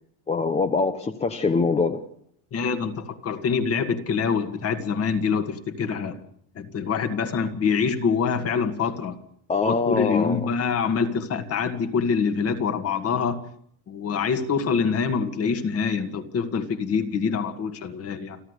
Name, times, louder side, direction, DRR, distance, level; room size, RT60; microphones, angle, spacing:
voice 1, 0.3-2.0 9.5-10.5, left 4 dB, 15° left, 9 dB, 0.8 m, -24 dB
voice 2, 2.5-6.2 6.6-9.2 9.6-13.4 13.9-18.4, left 5 dB, 35° left, 9 dB, 2.1 m, -25 dB
29.5 x 11.0 x 8.2 m, 0.66 s
cardioid pair, 155°, 41 cm